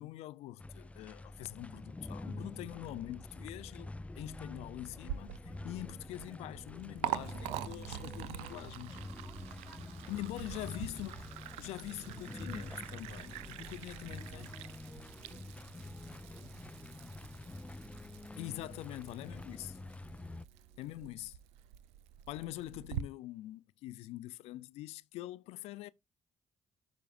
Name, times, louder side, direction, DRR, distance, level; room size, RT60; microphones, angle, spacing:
voice 1, 0.0-9.0 10.1-11.1 11.6-14.5 18.4-19.8 20.8-21.4 22.3-25.9, left 16 dB, 85° left, 0.4 m, -44 dB
sound 1, 0.6-20.5, left 2 dB, 10° left, 0.4 m, -47 dB
Liquid, 5.0-23.0, right 13 dB, 85° right, 0.4 m, -45 dB
voice 2, 9.8-11.2 13.5-17.9 20.4-21.1, right 3 dB, 45° right, 4.0 m, -68 dB
11.5 x 6.1 x 2.4 m
supercardioid pair, 60°, 10 cm